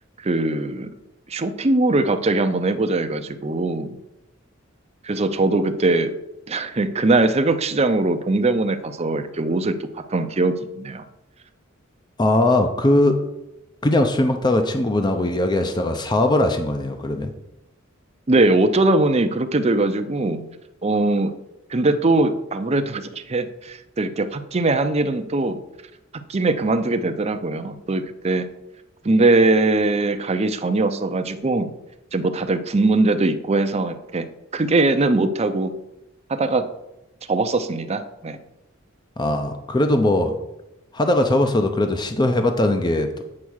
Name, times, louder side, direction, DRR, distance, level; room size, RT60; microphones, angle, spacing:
voice 1, 0.2-0.9 1.3-4.0 5.0-6.1 6.5-11.0 18.3-20.4 20.8-21.3 21.7-25.6 26.3-28.5 29.0-31.7 32.1-34.3 34.5-35.7 36.3-36.7 37.3-38.4, right 2 dB, 30° right, 8 dB, 0.6 m, -21 dB
voice 2, 12.2-13.2 13.8-17.3 39.2-40.4 40.9-43.2, left 1 dB, 20° left, 6 dB, 0.6 m, -20 dB
8.6 x 4.6 x 6.3 m, 0.91 s
head